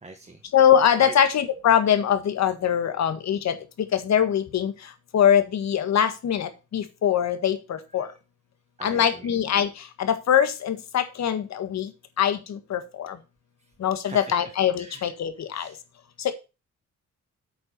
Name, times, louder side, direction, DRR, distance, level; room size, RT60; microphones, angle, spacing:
voice 1, 0.0-0.4 1.0-1.2 8.0-8.2 8.8-9.3 14.1-15.1 15.5-15.8, right 3 dB, 20° right, 3 dB, 1.6 m, -42 dB
voice 2, 0.5-3.6 3.9-4.7 5.1-8.1 8.8-11.9 12.2-13.2 13.8-15.7 16.2-16.3, left 9 dB, 65° left, 10 dB, 1.7 m, -22 dB
8.4 x 7.1 x 5.3 m, 0.28 s
wide cardioid pair, 160°, 30 cm